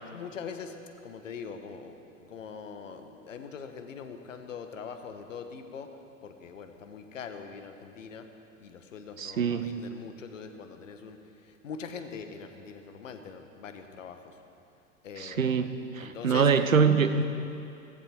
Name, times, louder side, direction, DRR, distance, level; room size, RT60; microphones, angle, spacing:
voice 1, 0.1-0.8 1.0-5.9 6.2-8.3 8.6-11.2 11.4-14.2 15.0-15.6 16.0-16.5, left 6 dB, 70° left, 7 dB, 1.5 m, -42 dB
voice 2, 9.2-9.8 15.2-17.2, right 6 dB, 80° right, 10 dB, 1.0 m, -24 dB
17.0 x 15.0 x 4.5 m, 2.6 s
figure-of-eight pair, 90°, 40 cm